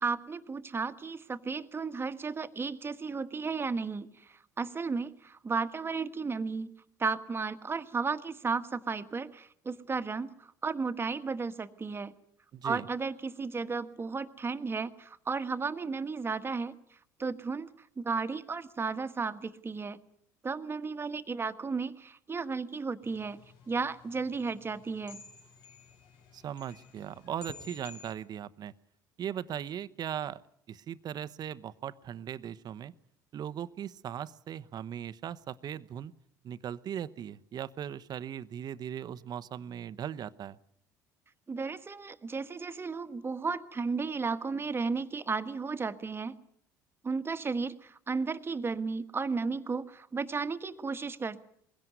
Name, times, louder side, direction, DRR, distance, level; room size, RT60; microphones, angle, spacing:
voice 1, 0.0-6.7 7.0-12.1 12.6-16.8 17.2-17.7 18.0-20.0 20.4-23.4 23.7-25.2 41.5-46.4 47.0-51.4, right 4 dB, 25° right, 11 dB, 1.5 m, -34 dB
voice 2, 12.5-12.9 26.3-28.7 29.2-30.4 30.7-32.9 33.3-36.1 36.4-40.6, right 9 dB, 50° right, 15 dB, 1.0 m, -38 dB
sound 1, 23.0-28.1, left 4 dB, 65° left, 4.3 m, -52 dB
22.0 x 16.5 x 9.4 m, 0.69 s
hypercardioid pair, 70°, 9 cm